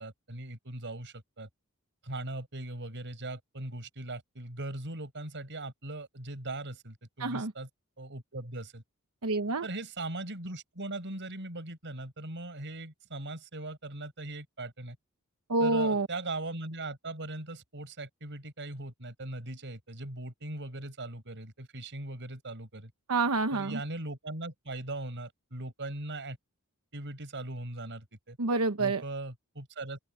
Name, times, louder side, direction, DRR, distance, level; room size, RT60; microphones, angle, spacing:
voice 1, 0.0-1.5 2.0-7.7 8.0-8.8 9.6-15.0 15.6-22.9 23.5-26.4 26.9-28.4 28.8-30.0, right 2 dB, 55° right, 6.3 m, -39 dB
voice 2, 7.2-7.5 9.2-9.6 15.5-16.1 23.1-23.8 28.4-29.0, right 3 dB, 80° right, 1.0 m, -27 dB
open air
head